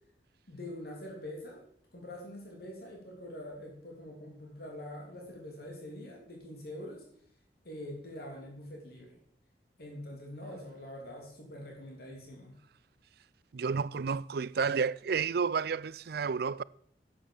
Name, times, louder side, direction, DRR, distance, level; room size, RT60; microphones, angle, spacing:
voice 1, 0.5-1.6 1.9-7.0 7.6-9.1 9.8-12.6, left 1 dB, 60° left, 3.2 m, -44 dB
voice 2, 13.5-16.6, right 5 dB, 60° right, 0.4 m, -31 dB
11.5 x 8.5 x 7.0 m
head